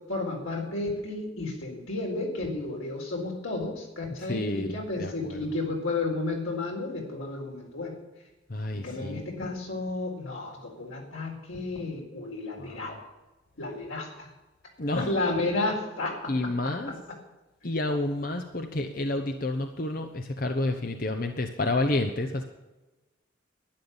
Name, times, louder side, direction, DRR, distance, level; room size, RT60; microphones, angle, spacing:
voice 1, 0.1-8.0 8.7-13.0 13.6-14.3 15.0-16.1 16.6-16.7, left 2 dB, 85° left, 0 dB, 4.2 m, -32 dB
voice 2, 4.3-4.7 5.0-5.4 8.5-9.2 12.6-12.8 14.8-15.1 16.3-16.9 17.6-22.4, left 2 dB, 45° left, 5 dB, 0.8 m, -29 dB
12.0 x 10.5 x 7.1 m, 1.1 s
head